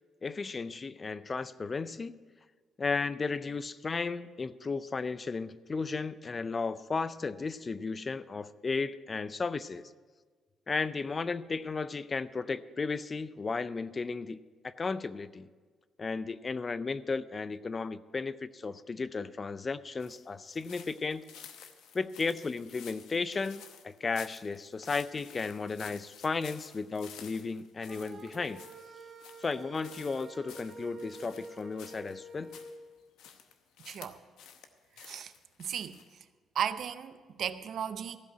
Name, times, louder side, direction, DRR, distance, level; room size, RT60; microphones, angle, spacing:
voice 1, 0.2-2.2 2.8-9.9 10.7-14.4 14.6-15.5 16.0-21.3 21.9-28.6 29.4-32.6, left 4 dB, 35° left, 0.4 m, -34 dB
sound 1, 20.0-32.8 33.2-34.7 35.0-36.2, left 8 dB, 90° left, 0.9 m, -52 dB
sound 2, 27.9-32.7, right 2 dB, 50° right, 1.2 m, -48 dB
voice 2, 33.9-34.2 35.0-35.3 35.6-36.0 36.5-38.2, right 8 dB, 65° right, 0.6 m, -35 dB
15.0 x 5.5 x 8.6 m
cardioid pair, 90°, 0 cm